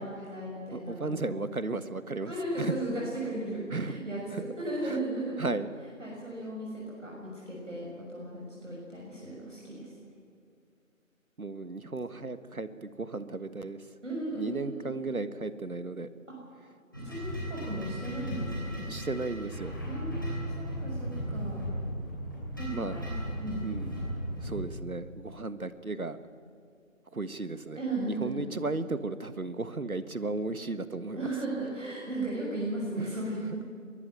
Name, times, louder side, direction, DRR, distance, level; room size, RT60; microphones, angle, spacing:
voice 1, 0.0-1.3 2.2-5.5 6.0-9.9 14.0-15.0 17.0-18.8 19.9-21.7 22.6-23.6 27.7-28.5 31.1-33.7, right 1 dB, 60° right, -4 dB, 6.4 m, -36 dB
voice 2, 0.7-2.7 3.7-4.0 4.3-4.4 4.9-5.0 5.4-5.7 11.4-13.8 14.3-16.1 18.9-19.8 22.7-23.0 23.6-24.0 24.4-26.2 27.1-27.8 28.1-31.3 33.0-33.2, right 3 dB, 85° right, 12 dB, 1.5 m, -35 dB
sound 1, 16.9-24.6, equal, 15° left, 2.9 m, -36 dB
23.0 x 14.0 x 9.1 m, 2.4 s
figure-of-eight pair, 175°, 42 cm